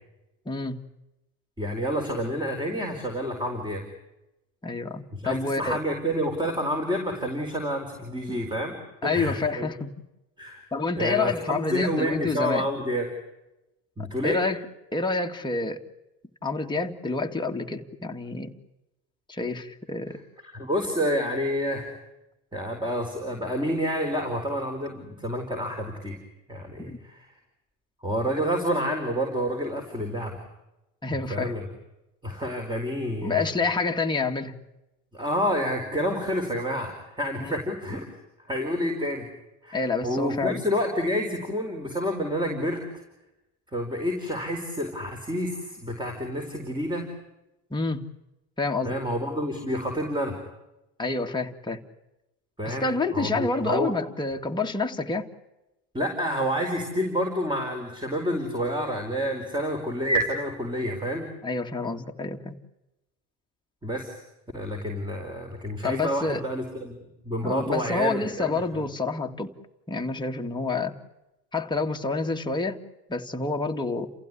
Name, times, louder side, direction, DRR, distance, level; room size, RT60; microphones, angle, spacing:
voice 1, 0.5-0.8 4.6-5.8 9.0-9.9 10.7-12.7 14.2-14.6 14.9-15.8 16.4-18.5 19.3-20.2 26.8-27.0 31.0-31.5 33.2-34.5 37.4-37.5 39.7-40.6 47.7-48.0 48.6-48.9 51.0-51.8 52.7-55.3 61.4-62.6 65.8-66.4 67.4-69.5 69.9-70.9 71.5-72.8 73.1-74.1, left 3 dB, 10° left, 2.1 m, -28 dB
voice 2, 1.6-3.8 5.2-9.7 10.4-10.6 11.0-13.1 14.0-14.4 20.5-22.0 22.5-26.2 26.5-27.3 28.0-30.4 31.3-31.7 32.2-33.6 35.1-38.1 38.5-39.2 39.6-43.0 43.7-47.1 48.8-50.4 52.6-53.9 55.9-61.3 63.8-64.2 64.5-66.9 67.2-68.8, equal, 10° right, 4.8 m, -29 dB
29.5 x 16.0 x 9.9 m
supercardioid pair, 105°, 41 cm